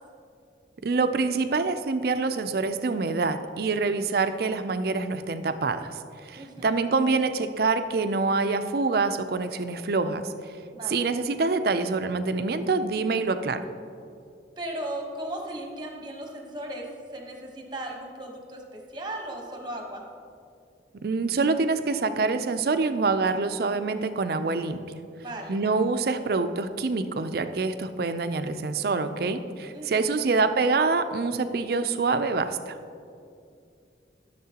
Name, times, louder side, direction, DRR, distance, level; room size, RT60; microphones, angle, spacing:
voice 1, 0.8-10.2 10.9-13.6 20.9-24.8 25.5-32.8, right 4 dB, 55° right, 10 dB, 0.4 m, -26 dB
voice 2, 6.3-6.8 10.7-11.0 14.6-20.0 25.2-25.6 29.7-30.1, right 1 dB, 25° right, 1 dB, 1.0 m, -37 dB
14.0 x 6.7 x 2.9 m, 2.5 s
head